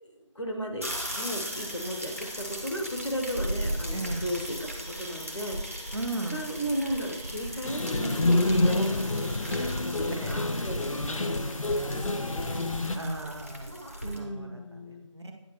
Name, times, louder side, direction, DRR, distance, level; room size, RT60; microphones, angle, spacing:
voice 1, 0.0-5.9 6.3-12.6 14.0-15.1, equal, 60° left, 2 dB, 1.1 m, -36 dB
sound 1, 0.8-14.2, equal, 25° right, 0.8 m, -37 dB
voice 2, 3.9-4.3 5.9-6.4 10.2-10.4 12.9-13.7 14.1-15.3, right 2 dB, 55° right, 2 dB, 1.0 m, -36 dB
sound 2, 7.6-13.0, left 2 dB, 75° left, 0.7 m, -28 dB
9.0 x 4.9 x 3.1 m, 1.0 s
figure-of-eight pair, 180°, 17 cm